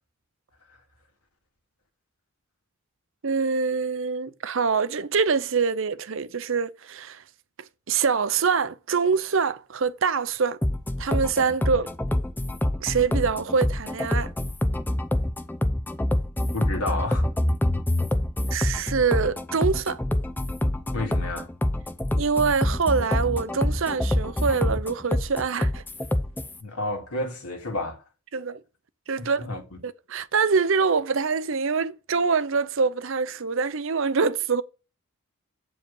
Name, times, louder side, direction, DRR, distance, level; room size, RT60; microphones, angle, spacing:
voice 1, 3.2-7.2 7.9-10.6 11.0-11.9 12.8-14.3 18.5-20.0 22.2-25.8 28.3-28.6 29.1-29.5 29.8-34.6, right 5 dB, 60° right, 0.6 m, -25 dB
sound 1, 10.6-26.6, left 1 dB, 10° left, 0.5 m, -26 dB
voice 2, 16.5-17.3 20.9-21.5 26.6-28.0 29.2-29.8, left 2 dB, 90° left, 2.3 m, -31 dB
8.0 x 4.9 x 5.4 m
head